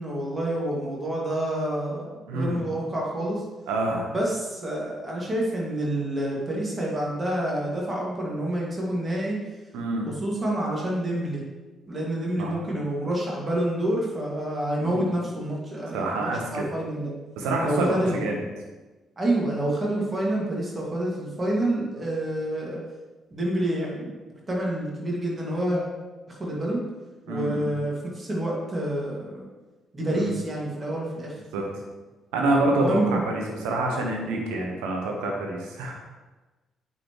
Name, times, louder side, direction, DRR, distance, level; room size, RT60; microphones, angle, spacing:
voice 1, 0.0-3.4 4.1-9.4 10.2-11.4 11.9-17.1 17.6-18.4 19.2-22.8 23.3-24.2 24.5-25.8 26.3-26.8 27.3-29.5 29.9-31.4 32.7-33.2, right 1 dB, 30° right, -3 dB, 2.1 m, -28 dB
voice 2, 2.3-2.6 3.7-4.1 9.7-10.1 12.4-12.5 14.8-15.1 15.9-16.7 17.4-18.4 27.3-27.7 30.1-30.3 31.5-31.6 32.3-36.0, right 2 dB, 70° right, 0 dB, 1.1 m, -27 dB
8.7 x 4.3 x 3.1 m, 1.2 s
figure-of-eight pair, 45°, 0 cm